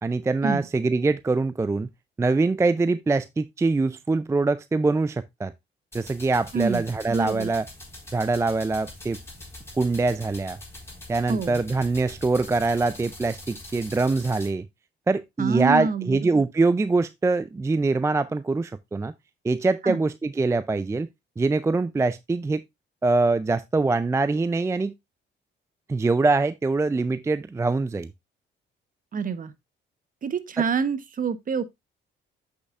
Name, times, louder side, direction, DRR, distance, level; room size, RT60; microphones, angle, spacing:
voice 1, 0.0-1.9 2.2-5.5 5.9-7.6 8.1-9.2 9.8-10.6 11.1-14.7 15.1-19.1 19.4-21.1 21.4-22.6 23.0-24.9 25.9-28.1, right 3 dB, 15° right, 0.4 m, -23 dB
sound 1, 5.9-14.5, left 2 dB, 10° left, 4.0 m, -43 dB
voice 2, 6.5-7.5 11.3-11.6 15.4-16.4 19.8-20.0 29.1-29.5 30.2-31.6, right 6 dB, 45° right, 1.0 m, -27 dB
7.9 x 6.6 x 2.4 m
cardioid pair, 90°, 20 cm